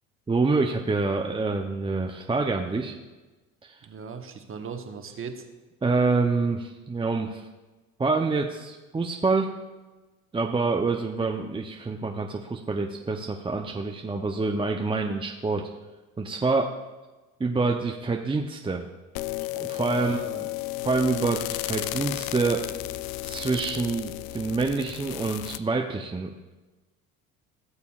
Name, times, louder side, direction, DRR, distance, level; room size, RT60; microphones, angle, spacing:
voice 1, 0.3-3.0 3.6-3.8 5.8-7.4 8.0-9.6 10.3-15.7 16.2-16.7 17.4-18.9 19.6-20.2 20.8-22.6 23.2-26.5, right 3 dB, 15° right, 2 dB, 0.6 m, -26 dB
voice 2, 3.8-5.5 19.9-20.5, right 6 dB, 35° right, 6 dB, 1.2 m, -38 dB
sound 1, 19.2-25.6, left 18 dB, 60° left, 0.5 m, -33 dB
16.5 x 6.9 x 2.4 m, 1.2 s
hypercardioid pair, 75°, 39 cm